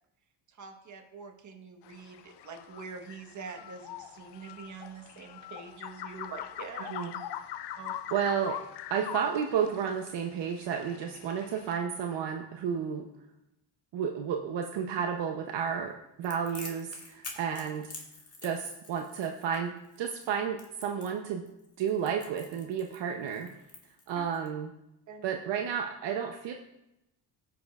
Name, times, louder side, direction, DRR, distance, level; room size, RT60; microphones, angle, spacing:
voice 1, 0.5-6.9 7.8-7.9 24.1-24.2 25.1-25.4, right 5 dB, 40° right, 4 dB, 1.2 m, -45 dB
sound 1, 1.8-11.8, left 11 dB, 60° left, 0.5 m, -43 dB
voice 2, 6.9-7.2 8.1-8.6 8.9-13.1 13.9-17.9 18.4-21.5 21.8-23.5 24.1-24.7 25.2-26.5, right 7 dB, 65° right, 3 dB, 0.8 m, -32 dB
Crackle, 16.2-24.5, left 3 dB, 30° left, 1.7 m, -47 dB
15.0 x 6.1 x 2.4 m, 0.89 s
cardioid pair, 120°, 46 cm